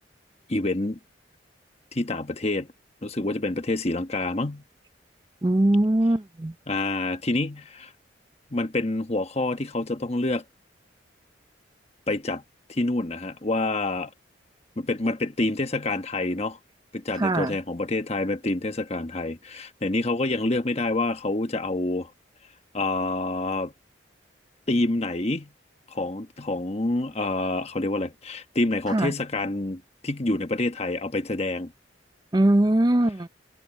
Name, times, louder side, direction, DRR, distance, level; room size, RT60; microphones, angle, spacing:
voice 1, 0.5-1.0 1.9-2.7 3.0-4.6 6.7-7.9 8.5-10.4 12.1-12.4 12.7-14.1 14.8-16.6 16.9-22.1 22.7-23.7 24.7-25.5 25.9-31.7, left 2 dB, 35° left, 1.3 m, -27 dB
voice 2, 5.4-6.5 17.1-17.6 28.9-29.1 32.3-33.3, right 1 dB, 20° right, 0.5 m, -21 dB
head